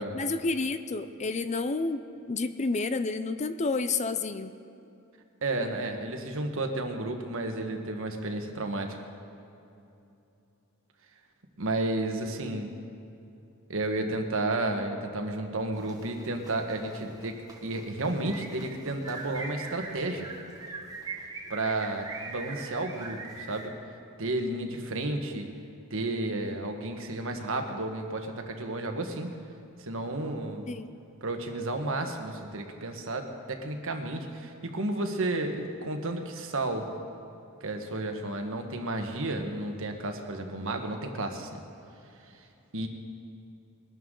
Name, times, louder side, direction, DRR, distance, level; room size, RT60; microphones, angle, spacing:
voice 1, 0.1-4.5 30.7-30.9, left 3 dB, 35° left, 11 dB, 0.5 m, -30 dB
voice 2, 5.4-9.0 11.6-12.7 13.7-20.3 21.5-23.7 24.2-25.5 25.9-29.3 29.8-30.7 31.2-36.9 37.6-41.6 42.7-42.9, right 2 dB, 65° right, 5 dB, 1.4 m, -32 dB
sound 1, 15.7-23.7, right 3 dB, 20° right, 1.6 m, -42 dB
22.0 x 12.5 x 3.8 m, 2.8 s
head